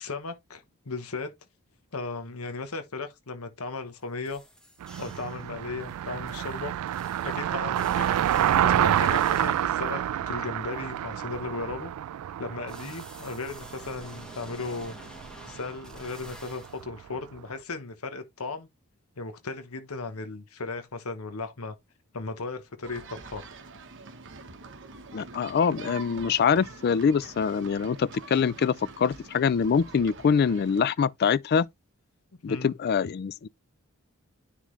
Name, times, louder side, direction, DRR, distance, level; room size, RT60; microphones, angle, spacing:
voice 1, 0.0-1.3 1.9-4.4 5.0-6.7 7.2-8.1 8.6-11.9 12.4-14.9 15.5-18.7 19.2-21.7 22.1-23.5 32.5-32.8, left 3 dB, 80° left, 1.1 m, -36 dB
sound 1, 3.9-4.0 4.3-5.5 5.8-9.8 12.7-16.8, equal, 5° left, 1.5 m, -49 dB
Car passing by, 4.8-17.1, right 10 dB, 80° right, 0.3 m, -28 dB
sound 2, 22.8-30.8, right 4 dB, 55° right, 1.1 m, -45 dB
voice 2, 25.1-31.7 32.4-33.5, left 6 dB, 45° left, 0.3 m, -24 dB
10.0 x 3.7 x 3.2 m
head